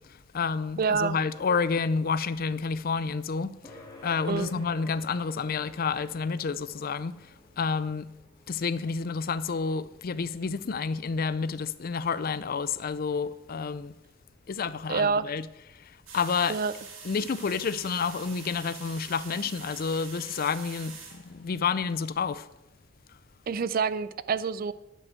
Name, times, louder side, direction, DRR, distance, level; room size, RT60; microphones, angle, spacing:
voice 1, 0.0-7.3 7.6-8.1 8.5-13.9 14.5-16.6 17.0-22.5, left 5 dB, 45° left, 0.4 m, -30 dB
voice 2, 0.8-1.2 4.3-4.5 14.9-15.3 16.5-16.7 23.5-24.7, right 5 dB, 45° right, 0.4 m, -27 dB
sound 1, 3.6-18.5, left 1 dB, 20° left, 2.1 m, -56 dB
sound 2, 16.1-21.9, right 5 dB, 85° right, 2.1 m, -45 dB
10.5 x 5.4 x 7.6 m
head